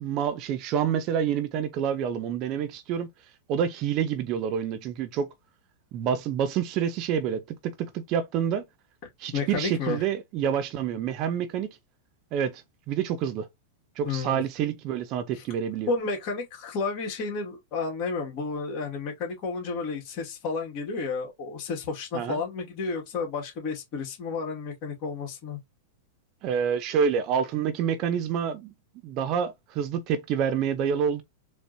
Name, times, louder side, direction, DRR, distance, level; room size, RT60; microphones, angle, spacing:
voice 1, 0.0-3.1 3.5-5.3 5.9-8.6 9.2-11.7 12.3-13.5 14.0-15.9 22.1-22.4 26.4-28.7 29.0-31.2, right 8 dB, 45° right, 0.6 m, -28 dB
voice 2, 9.3-10.0 14.0-14.4 15.3-15.4 15.9-25.6, left 4 dB, 45° left, 2.1 m, -31 dB
4.2 x 3.2 x 2.7 m
hypercardioid pair, 110°, 0 cm